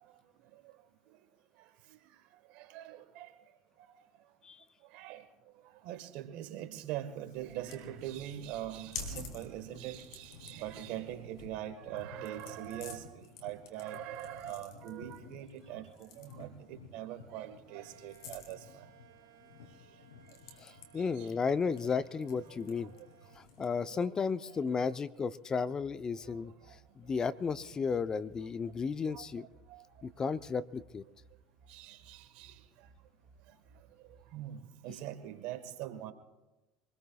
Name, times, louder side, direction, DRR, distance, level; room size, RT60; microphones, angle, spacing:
voice 1, 2.6-3.3 4.9-5.2 5.8-18.6 21.2-21.3 22.8-22.9 23.9-24.1 24.6-24.7 29.1-29.2 29.7-29.8 31.7-32.5 34.3-34.6 34.8-36.1, right 12 dB, 70° right, 9 dB, 1.5 m, -42 dB
sound 1, 7.2-23.9, left 4 dB, 85° left, 3.0 m, -51 dB
sound 2, 17.6-23.5, right 7 dB, 85° right, 4.0 m, -61 dB
voice 2, 20.6-22.9 23.4-26.5 27.0-29.5 30.0-31.0, left 5 dB, 30° left, 14 dB, 0.6 m, -34 dB
sound 3, 25.6-34.4, right 4 dB, 35° right, 4.1 m, -63 dB
25.5 x 20.0 x 2.4 m, 1.1 s
hypercardioid pair, 80°, 2 cm